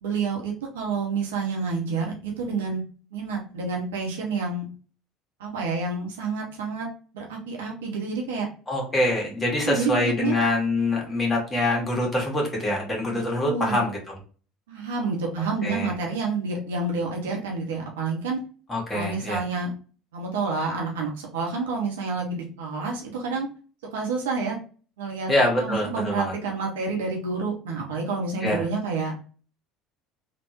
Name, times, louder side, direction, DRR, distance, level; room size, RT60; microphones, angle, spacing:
voice 1, 0.0-2.8 3.1-4.7 5.4-6.9 7.1-8.5 9.7-10.4 13.1-13.8 14.7-18.4 18.9-19.7 20.1-23.5 23.9-24.6 25.0-25.3 25.6-29.1, right 4 dB, 70° right, 0 dB, 0.9 m, -29 dB
voice 2, 8.7-14.2 15.6-15.9 18.7-19.4 25.3-26.3 28.4-28.6, left 1 dB, 20° left, -1 dB, 1.5 m, -25 dB
3.4 x 2.5 x 2.9 m, 0.38 s
figure-of-eight pair, 65°, 0 cm